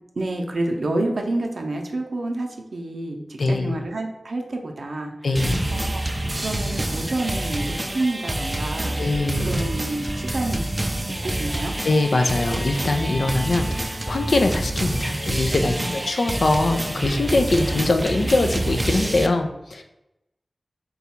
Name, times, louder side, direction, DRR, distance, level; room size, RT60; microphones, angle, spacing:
voice 1, 0.2-5.4 5.7-6.0 6.4-10.6 11.1-11.7 15.6-15.9, right 2 dB, 80° right, 2 dB, 0.5 m, -29 dB
voice 2, 3.4-3.7 5.2-5.7 9.0-9.6 11.8-19.8, left 2 dB, 80° left, 5 dB, 0.4 m, -22 dB
sound 1, 5.3-19.3, right 1 dB, 25° right, 0.3 m, -27 dB
3.9 x 2.3 x 4.2 m, 0.90 s
wide cardioid pair, 70°, 0 cm